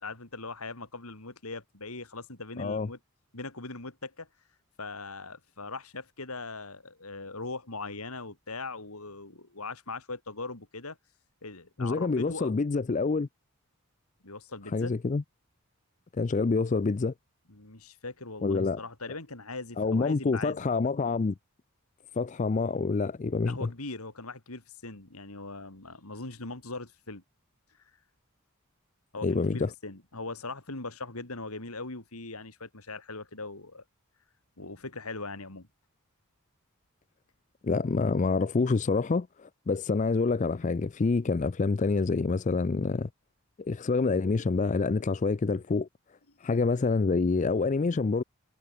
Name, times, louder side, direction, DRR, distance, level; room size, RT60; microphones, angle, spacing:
voice 1, 0.0-3.0 3.3-4.3 4.8-11.0 11.4-12.5 14.2-14.9 17.5-20.6 23.4-27.2 29.1-33.8 34.6-35.7, left 3 dB, 80° left, 3.5 m, -40 dB
voice 2, 2.6-2.9 11.8-13.3 14.7-15.2 16.1-17.1 18.4-18.8 19.8-21.3 22.2-23.7 29.2-29.7 37.6-43.1 43.6-45.9 46.4-48.2, left 4 dB, 35° left, 0.4 m, -27 dB
head